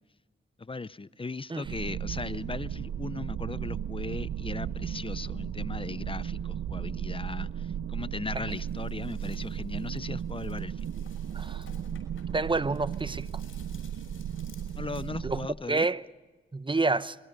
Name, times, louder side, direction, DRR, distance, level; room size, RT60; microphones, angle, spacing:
voice 1, 0.6-10.8 14.8-15.9, left 3 dB, 25° left, 0.7 m, -38 dB
sound 1, 1.6-15.5, right 9 dB, 85° right, 0.7 m, -35 dB
sound 2, 8.5-15.0, left 5 dB, 75° left, 6.3 m, -57 dB
voice 2, 11.3-11.6 12.3-13.3 15.2-15.4 15.7-16.0 16.5-17.2, right 3 dB, 25° right, 0.9 m, -28 dB
27.0 x 21.5 x 5.3 m
cardioid pair, 50°, 21 cm